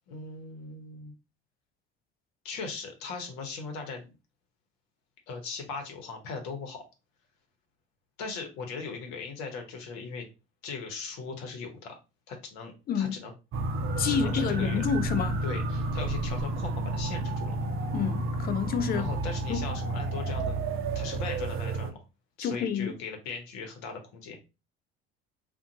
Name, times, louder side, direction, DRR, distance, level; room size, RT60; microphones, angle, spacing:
voice 1, 0.1-1.1 2.4-4.1 5.3-6.8 8.2-10.3 10.6-11.9 12.3-13.3 14.0-14.8 15.4-17.6 18.9-20.6 20.9-22.0 22.4-24.4, left 4 dB, 60° left, 0.9 m, -39 dB
sound 1, 13.5-21.9, right 2 dB, 40° right, 0.6 m, -31 dB
voice 2, 14.0-15.4 17.9-19.1 19.5-19.6 22.4-23.0, left 7 dB, 30° left, 0.4 m, -29 dB
2.5 x 2.2 x 2.7 m
figure-of-eight pair, 55°, 32 cm